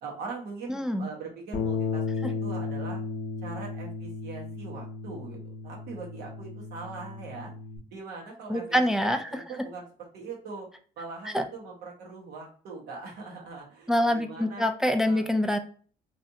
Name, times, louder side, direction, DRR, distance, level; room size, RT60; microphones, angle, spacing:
voice 1, 0.0-3.0 3.4-7.5 7.9-10.7 11.0-14.7 15.0-15.2, right 4 dB, 75° right, -1 dB, 1.2 m, -41 dB
voice 2, 0.7-1.1 2.2-2.3 8.5-9.4 11.3-11.5 13.9-15.6, equal, 5° right, 6 dB, 0.3 m, -25 dB
Bass guitar, 1.5-7.8, left 4 dB, 45° left, 0.8 m, -34 dB
3.2 x 2.7 x 2.7 m, 0.42 s
cardioid pair, 110°, 17 cm